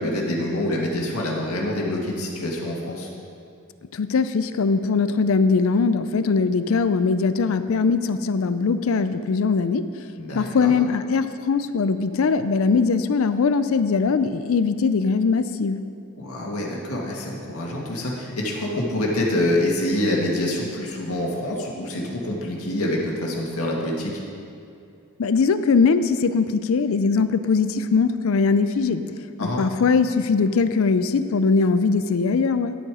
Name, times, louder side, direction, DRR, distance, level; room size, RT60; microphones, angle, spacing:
voice 1, 0.0-3.1 10.2-10.7 16.2-24.1 29.4-29.6, left 1 dB, 80° left, -2 dB, 1.9 m, -26 dB
voice 2, 3.9-10.1 10.3-15.8 25.2-32.8, left 4 dB, 65° left, 11 dB, 0.4 m, -21 dB
11.0 x 7.9 x 4.9 m, 2.6 s
head